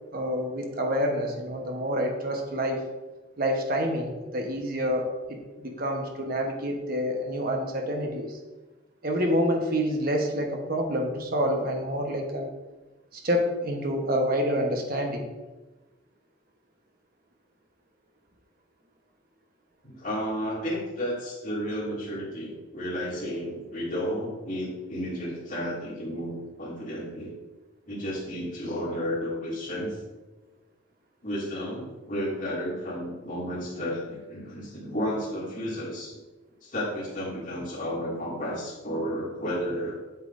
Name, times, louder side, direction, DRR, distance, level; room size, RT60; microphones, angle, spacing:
voice 1, 0.1-2.9 3.4-8.4 9.0-12.5 13.1-15.2, equal, 50° right, 2 dB, 1.1 m, -28 dB
voice 2, 19.8-27.4 27.9-30.0 31.2-36.2 36.6-40.0, equal, 40° left, -6 dB, 2.3 m, -32 dB
8.3 x 5.9 x 2.6 m, 1.2 s
head